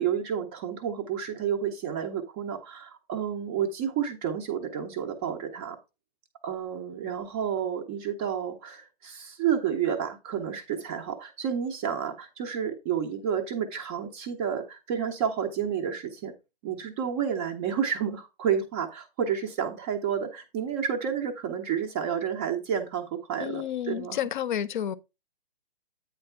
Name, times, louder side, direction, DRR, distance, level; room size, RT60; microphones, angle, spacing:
voice 1, 0.0-5.8 6.4-16.3 16.6-24.2, right 8 dB, 15° right, 0.5 m, -30 dB
voice 2, 23.4-25.0, left 10 dB, 50° left, 0.7 m, -30 dB
8.8 x 3.4 x 5.5 m
hypercardioid pair, 150°, 31 cm